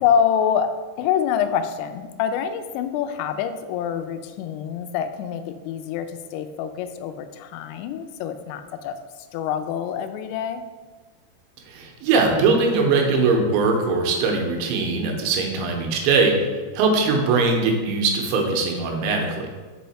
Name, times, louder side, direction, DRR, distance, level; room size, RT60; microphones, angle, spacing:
voice 1, 0.0-9.0 9.3-10.6, left 8 dB, 85° left, 8 dB, 2.8 m, -26 dB
voice 2, 11.7-16.5 16.7-19.5, right 4 dB, 85° right, 2 dB, 3.2 m, -21 dB
5.6 x 5.6 x 4.2 m, 1.3 s
omnidirectional pair, 5.2 m